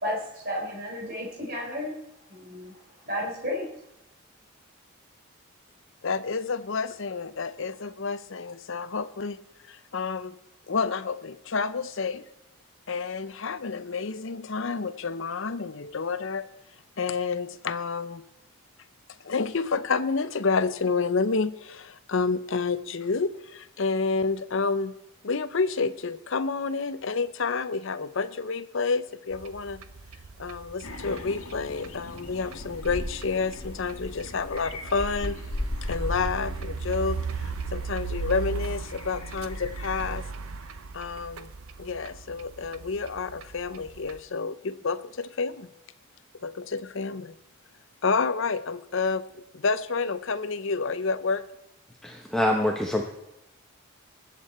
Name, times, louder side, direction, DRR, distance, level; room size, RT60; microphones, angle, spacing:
voice 1, 0.0-1.9 2.3-2.7 3.0-3.7, left 1 dB, 45° right, -2 dB, 3.8 m, -32 dB
voice 2, 6.0-9.4 9.7-10.4 10.7-12.2 12.9-16.5 17.0-18.2 19.2-24.9 25.2-29.8 30.4-35.4 35.8-40.3 40.9-41.5 41.8-45.7 46.4-47.3 48.0-49.3 49.5-51.4, left 4 dB, 60° left, 14 dB, 0.6 m, -29 dB
sound 1, 29.3-44.2, right 5 dB, 75° right, 0.7 m, -38 dB
sound 2, 30.8-40.2, left 1 dB, 80° left, 1.6 m, -37 dB
voice 3, 52.0-53.0, left 1 dB, 5° left, 0 dB, 0.9 m, -25 dB
20.5 x 8.3 x 4.3 m, 0.90 s
head